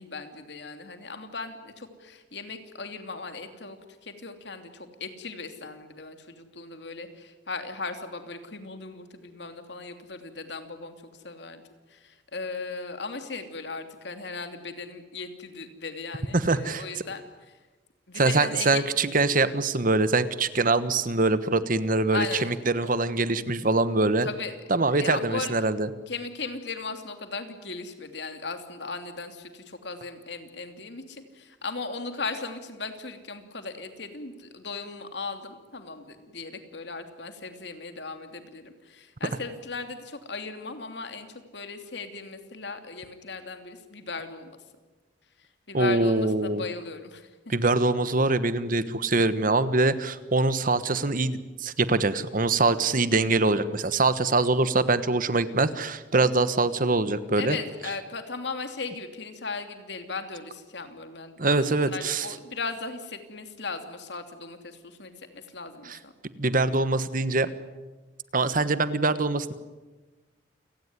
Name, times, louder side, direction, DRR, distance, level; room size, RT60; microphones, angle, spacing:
voice 1, 0.0-11.6 11.9-17.6 18.1-18.8 22.1-22.5 22.8-22.9 24.2-24.6 24.9-25.5 26.1-44.5 45.4-47.5 57.4-66.1, left 4 dB, 65° left, 7 dB, 3.0 m, -37 dB
voice 2, 16.3-16.8 18.2-24.3 24.7-25.9 45.7-46.7 47.5-57.6 61.4-62.3 65.9-66.0 66.4-67.5 68.3-69.5, right 3 dB, 50° right, 13 dB, 1.3 m, -24 dB
29.0 x 18.5 x 9.7 m, 1.2 s
head